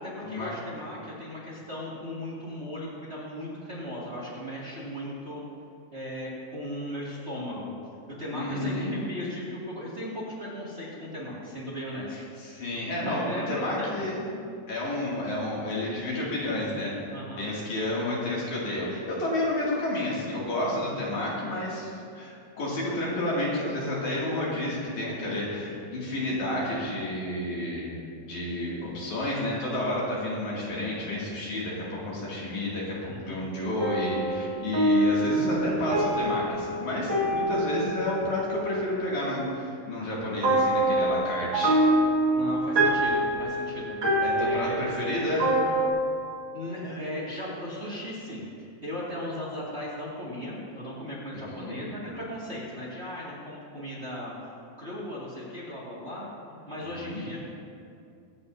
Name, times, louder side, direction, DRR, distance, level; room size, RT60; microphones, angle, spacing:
voice 1, 0.0-5.4 5.9-7.8 8.2-12.6 13.0-13.9 17.1-17.4 33.1-33.4 42.3-44.8 46.5-54.5 54.8-57.4, left 1 dB, 25° right, -7 dB, 2.1 m, -37 dB
voice 2, 8.3-8.9 12.1-14.4 14.7-17.0 17.4-27.9 28.2-41.8 44.2-45.6 51.3-51.8 57.0-57.3, left 1 dB, 70° left, -6 dB, 3.8 m, -30 dB
sound 1, 33.8-39.1 40.4-45.9, right 1 dB, 45° right, 2.3 m, -26 dB
23.0 x 8.9 x 2.7 m, 2.4 s
omnidirectional pair, 3.5 m